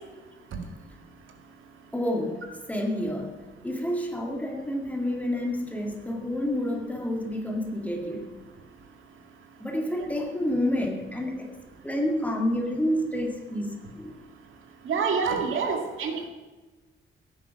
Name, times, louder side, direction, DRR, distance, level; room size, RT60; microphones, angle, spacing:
voice 1, 1.9-2.4 2.7-3.3 3.6-8.4 9.6-11.5 11.8-14.2, left 1 dB, 5° left, 1 dB, 2.0 m, -29 dB
voice 2, 14.9-16.3, right 5 dB, 85° right, 4 dB, 2.1 m, -27 dB
16.0 x 9.5 x 5.8 m, 1.2 s
wide cardioid pair, 170°, 20 cm